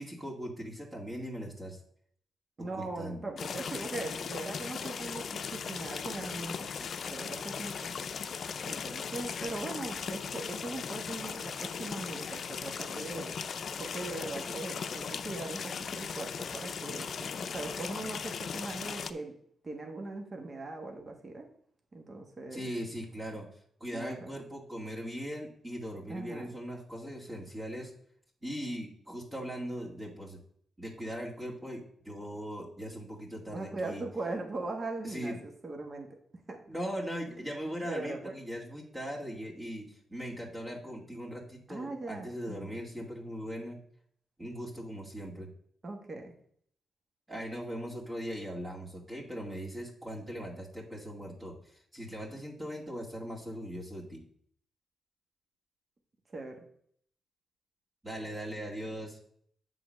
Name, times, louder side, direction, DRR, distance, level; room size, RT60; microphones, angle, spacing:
voice 1, 0.0-1.8 2.6-3.3 22.5-23.5 23.8-27.9 28.4-30.4 30.8-34.0 35.0-35.4 36.7-43.8 44.4-45.5 47.3-54.2 58.0-59.2, equal, 25° right, -2 dB, 2.3 m, -39 dB
voice 2, 2.6-7.7 8.6-13.4 13.8-19.3 19.6-21.4 21.9-22.6 23.9-24.3 26.1-26.5 33.5-36.1 36.5-36.6 37.8-38.3 41.7-42.8 45.8-46.3 56.3-56.6, right 2 dB, 40° right, 3 dB, 1.5 m, -40 dB
sound 1, 3.4-19.1, left 6 dB, 60° left, 0.5 m, -38 dB
7.7 x 4.0 x 6.4 m, 0.64 s
cardioid pair, 70°, 0 cm